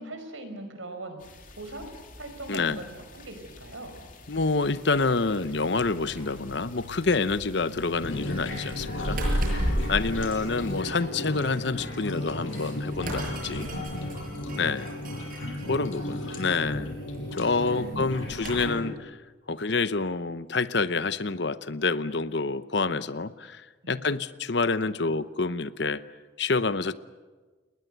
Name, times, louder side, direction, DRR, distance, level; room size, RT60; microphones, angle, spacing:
voice 1, 0.0-1.9 2.2-4.0 9.4-10.4 15.4-16.5 17.8-18.4 22.8-23.0 23.8-24.1, right 2 dB, 85° right, 7 dB, 5.2 m, -42 dB
sound 1, 1.2-10.8, left 2 dB, 40° left, 2.9 m, -49 dB
voice 2, 2.5-2.8 4.3-9.2 9.9-13.7 14.5-14.9 15.7-16.9 17.3-19.2 19.5-23.6 23.9-26.0 26.4-26.9, left 4 dB, 60° left, 14 dB, 0.9 m, -27 dB
sound 2, 5.4-18.7, equal, 45° right, 7.1 m, -36 dB
sound 3, 8.0-18.9, left 1 dB, 90° left, 6.6 m, -35 dB
29.5 x 20.5 x 8.1 m, 1.3 s
head